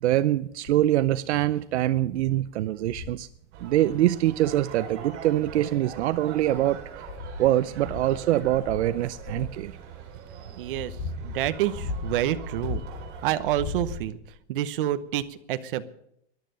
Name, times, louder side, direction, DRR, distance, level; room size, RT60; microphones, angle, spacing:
voice 1, 0.0-3.3 3.6-6.8 7.4-9.7 10.4-10.6, right 14 dB, 75° right, 13 dB, 0.7 m, -24 dB
sound 1, 0.7-1.0 1.6-1.7 2.1-2.3 2.8-3.3 4.7-4.8 5.6-6.3 6.8-9.6 10.3-13.1 13.4-14.4 15.2-15.3, left 4 dB, 45° left, 2.5 m, -37 dB
sound 2, 3.5-13.6, right 6 dB, 30° right, 3.9 m, -43 dB
voice 2, 10.6-12.8 13.2-14.2 14.5-15.8, right 12 dB, 50° right, 11 dB, 1.0 m, -28 dB
14.0 x 11.5 x 6.9 m, 0.73 s
supercardioid pair, 175°, 34 cm